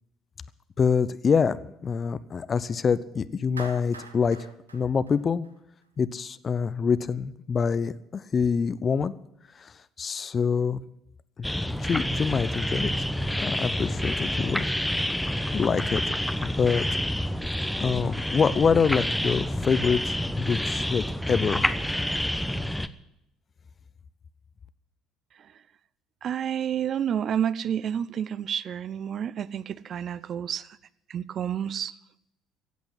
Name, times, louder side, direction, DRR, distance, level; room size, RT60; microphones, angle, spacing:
voice 1, 0.8-1.6 1.8-4.4 4.7-5.5 6.0-9.1 9.6-9.7 10.0-10.8 11.4-11.5 11.8-13.1 13.4-14.6 15.5-16.0 16.4-16.8 17.8-21.6, left 6 dB, 35° left, 16 dB, 0.8 m, -25 dB
Clapping, 3.6-5.9, right 3 dB, 90° right, 1.0 m, -44 dB
sound 1, 11.4-22.9, equal, 5° left, 1.0 m, -28 dB
voice 2, 26.2-30.7 31.1-31.9, right 9 dB, 50° right, 19 dB, 0.7 m, -29 dB
15.5 x 8.4 x 9.6 m, 0.82 s
figure-of-eight pair, 55°, 0 cm